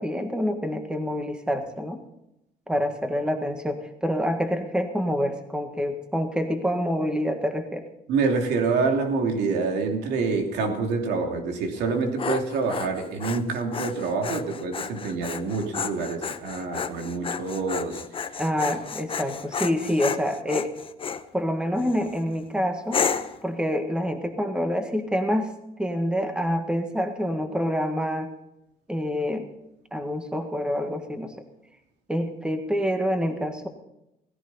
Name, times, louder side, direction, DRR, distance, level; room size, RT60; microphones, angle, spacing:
voice 1, 0.0-2.0 2.7-7.8 18.4-20.7 21.3-23.0 23.4-25.5 25.8-28.3 28.9-29.5 29.9-31.3 32.1-33.7, equal, 5° right, 6 dB, 1.7 m, -27 dB
voice 2, 8.1-18.0, right 4 dB, 85° right, 3 dB, 2.9 m, -26 dB
Dog, 11.8-21.2 21.8-22.2 22.9-23.4, left 6 dB, 30° left, 0.9 m, -32 dB
17.0 x 15.5 x 4.2 m, 0.87 s
cardioid pair, 110°, 17 cm